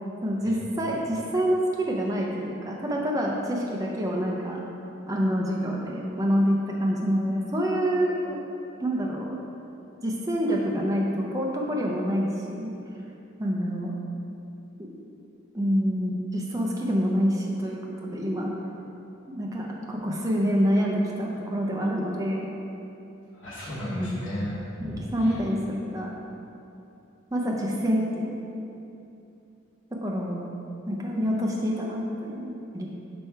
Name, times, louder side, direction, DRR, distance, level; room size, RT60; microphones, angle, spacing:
voice 1, 0.2-4.6 5.1-8.4 8.8-9.4 10.0-12.7 13.4-13.9 14.8-15.0 15.5-18.5 19.3-22.5 23.9-24.2 24.8-26.1 27.3-28.4 30.0-30.5 30.9-32.9, equal, 15° right, -2 dB, 0.5 m, -27 dB
voice 2, 23.3-25.3, equal, 90° left, -10 dB, 1.1 m, -34 dB
6.2 x 3.3 x 4.5 m, 2.8 s
head